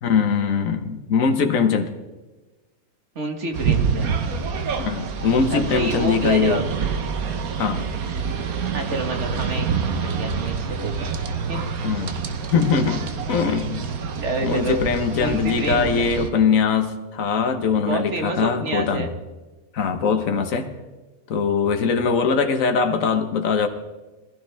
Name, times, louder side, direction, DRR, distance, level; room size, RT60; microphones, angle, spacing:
voice 1, 0.0-1.9 4.8-6.6 7.6-7.9 11.8-13.9 14.4-19.1 19.7-20.7 21.3-23.7, left 5 dB, 70° left, 6 dB, 1.5 m, -22 dB
voice 2, 3.2-4.1 5.5-6.6 8.7-11.1 11.5-11.7 14.2-14.8 15.2-16.1 17.7-19.1, right 2 dB, 55° right, 4 dB, 1.9 m, -28 dB
sound 1, 3.5-16.3, right 6 dB, 80° right, 1.5 m, -27 dB
21.0 x 15.5 x 3.4 m, 1.2 s
omnidirectional pair, 1.5 m